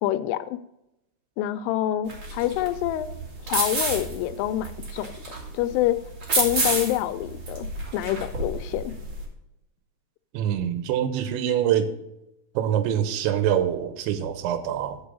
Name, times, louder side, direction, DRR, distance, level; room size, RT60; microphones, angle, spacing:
voice 1, 0.0-0.6 1.4-3.1 3.5-6.0 6.3-7.7 7.9-8.9, left 13 dB, 85° left, 10 dB, 3.1 m, -26 dB
sound 1, 2.1-9.2, right 2 dB, 50° right, 1.4 m, -30 dB
voice 2, 10.3-11.9 12.5-15.0, right 10 dB, 80° right, 10 dB, 3.0 m, -25 dB
10.0 x 5.5 x 5.3 m, 0.87 s
omnidirectional pair, 5.6 m